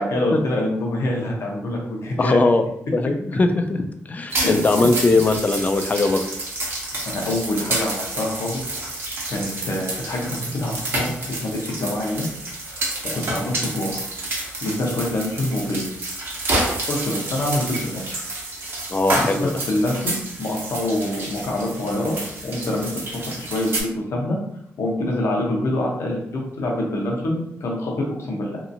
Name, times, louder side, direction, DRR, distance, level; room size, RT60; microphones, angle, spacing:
voice 1, 0.0-2.4 4.3-4.5 7.1-8.6 8.9-9.0 9.3-12.2 12.6-14.0 14.6-15.8 16.9-18.2 19.3-22.2 22.4-22.9 23.4-24.4 24.8-28.6, left 1 dB, 70° left, -1 dB, 0.8 m, -25 dB
voice 2, 2.2-2.6 2.9-6.3 18.9-19.5, left 3 dB, 30° left, 7 dB, 0.3 m, -20 dB
sound 1, 4.3-23.8, right 2 dB, 50° right, 0.8 m, -29 dB
2.8 x 2.4 x 2.6 m, 0.75 s
cardioid pair, 95°, 5 cm